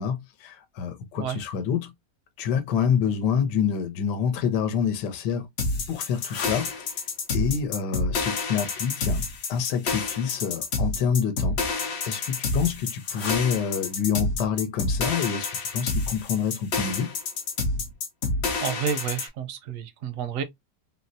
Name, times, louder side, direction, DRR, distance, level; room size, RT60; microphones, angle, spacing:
voice 1, 0.0-1.9 2.4-5.5 5.9-7.0 7.3-9.2 9.5-17.1, left 7 dB, 80° left, 1.3 m, -27 dB
sound 1, 5.6-19.3, left 3 dB, 55° left, 0.7 m, -28 dB
voice 2, 18.6-20.4, right 8 dB, 70° right, 0.8 m, -30 dB
3.9 x 2.1 x 2.6 m
omnidirectional pair, 1.8 m